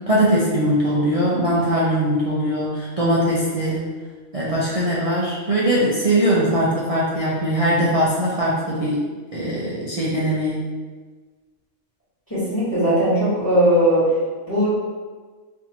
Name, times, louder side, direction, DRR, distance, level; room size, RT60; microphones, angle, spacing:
voice 1, 0.1-3.8 4.3-9.0 9.3-10.6, equal, 65° right, -7 dB, 0.3 m, -21 dB
voice 2, 12.3-14.0 14.5-14.7, equal, 15° left, -10 dB, 1.4 m, -18 dB
4.2 x 2.7 x 2.9 m, 1.4 s
omnidirectional pair, 1.4 m